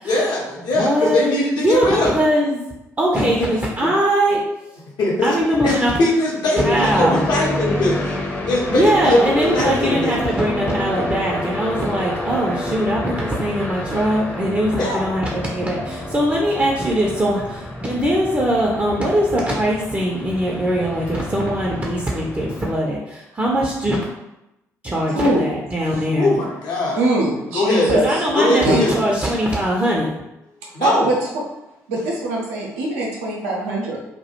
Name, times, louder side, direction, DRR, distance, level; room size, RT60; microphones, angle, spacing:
voice 1, 0.0-2.1 3.1-3.5 3.8-3.9 5.0-5.4 5.6-8.1 8.5-10.1 14.8-15.0 25.0-25.2 26.2-27.0 27.5-27.9 28.4-28.9 30.7-31.1, left 1 dB, 60° left, -3 dB, 0.7 m, -20 dB
voice 2, 0.7-2.6 3.0-4.7 5.2-5.9 6.6-7.2 8.7-24.0 24.8-26.4 27.9-30.2, right 1 dB, 20° right, -3 dB, 0.5 m, -21 dB
sound 1, 6.6-22.8, left 2 dB, 20° left, 0.6 m, -29 dB
voice 3, 25.2-26.0 26.9-28.2 28.6-28.8 30.6-31.2 31.9-34.0, right 1 dB, 80° right, -2 dB, 0.5 m, -22 dB
2.2 x 2.1 x 2.8 m, 0.91 s
figure-of-eight pair, 40°, 8 cm